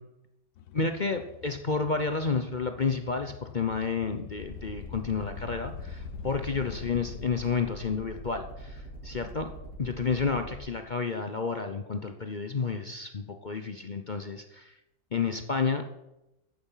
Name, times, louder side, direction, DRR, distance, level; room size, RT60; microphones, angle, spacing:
sound 1, 0.6-7.6, left 9 dB, 80° left, 1.6 m, -44 dB
voice 1, 0.7-9.5 9.8-14.7 15.1-15.9, left 4 dB, 65° left, 6 dB, 0.4 m, -31 dB
sound 2, 4.4-10.6, right 2 dB, 45° right, 6.5 m, -44 dB
14.5 x 10.5 x 5.7 m, 0.91 s
omnidirectional pair, 2.1 m